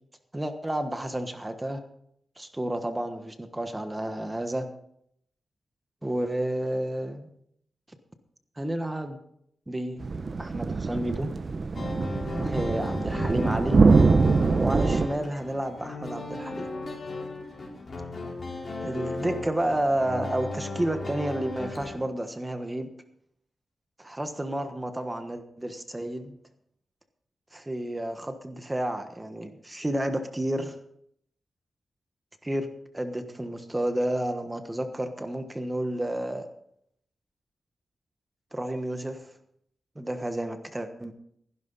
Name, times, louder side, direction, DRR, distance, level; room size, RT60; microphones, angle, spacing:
voice 1, 0.3-1.8 2.4-4.7 6.0-7.3 8.6-9.2 9.7-10.1 10.4-11.3 12.3-13.8 14.6-16.7 18.8-22.9 24.0-26.4 27.5-30.7 32.4-32.7 32.9-36.5 38.5-39.3 39.9-41.1, right 1 dB, 15° right, 8 dB, 1.3 m, -31 dB
sound 1, 10.0-15.1, right 4 dB, 50° right, 0.8 m, -23 dB
sound 2, 11.7-22.0, left 2 dB, 45° left, 4.2 m, -36 dB
15.0 x 11.5 x 4.1 m, 0.70 s
wide cardioid pair, 95°, 0 cm